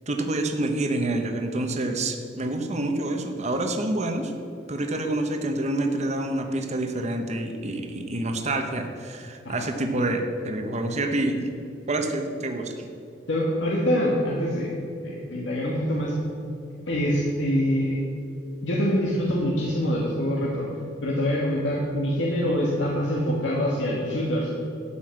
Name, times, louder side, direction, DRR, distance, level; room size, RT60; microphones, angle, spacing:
voice 1, 0.1-4.3 4.7-11.5 11.9-12.9, right 2 dB, 40° right, 5 dB, 1.0 m, -27 dB
voice 2, 13.3-14.7 15.0-16.1 16.9-18.0 18.6-20.7 21.0-24.5, equal, 80° left, -4 dB, 1.6 m, -25 dB
12.5 x 5.6 x 7.6 m, 2.6 s
head